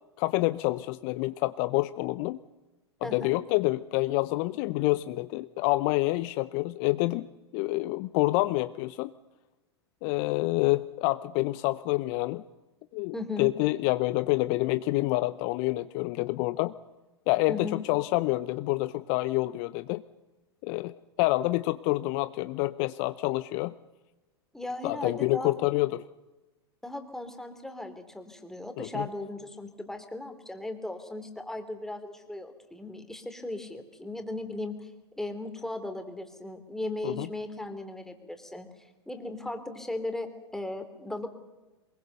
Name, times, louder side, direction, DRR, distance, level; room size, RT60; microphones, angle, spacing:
voice 1, 0.2-2.4 3.1-7.3 7.5-9.1 10.0-12.4 12.9-16.7 17.3-20.0 20.6-23.7 24.8-26.0 28.8-29.1 37.0-37.3, left 20 dB, 45° left, 14 dB, 0.7 m, -27 dB
voice 2, 3.0-3.3 13.1-13.5 17.5-17.8 24.5-25.5 26.8-34.9 35.2-41.3, left 2 dB, 5° left, 7 dB, 2.8 m, -37 dB
23.0 x 21.5 x 6.8 m, 1.1 s
hypercardioid pair, 100°, 14 cm